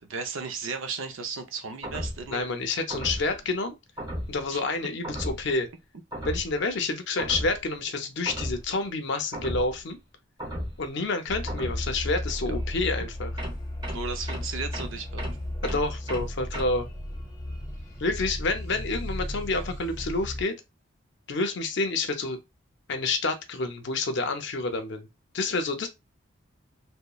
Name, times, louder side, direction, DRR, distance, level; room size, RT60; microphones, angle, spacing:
voice 1, 0.0-2.5 4.5-4.6 12.5-12.6 13.9-15.2, right 4 dB, 70° right, 0.5 m, -35 dB
sound 1, 1.8-2.3 2.9-3.3 4.0-4.4 5.0-5.5 6.1-6.6 7.2-7.6 8.2-8.7 9.3-9.8 10.4-10.9 11.5-11.9 13.4-16.6, equal, 20° right, 0.7 m, -35 dB
voice 2, 2.3-3.7 4.3-5.7 6.2-10.0 10.8-13.3 15.6-16.9 18.0-20.6 21.3-22.4 22.9-25.1 25.3-25.9, left 3 dB, 55° left, 0.5 m, -28 dB
sound 2, 11.3-20.4, left 1 dB, 15° left, 0.7 m, -35 dB
2.9 x 2.0 x 2.3 m
head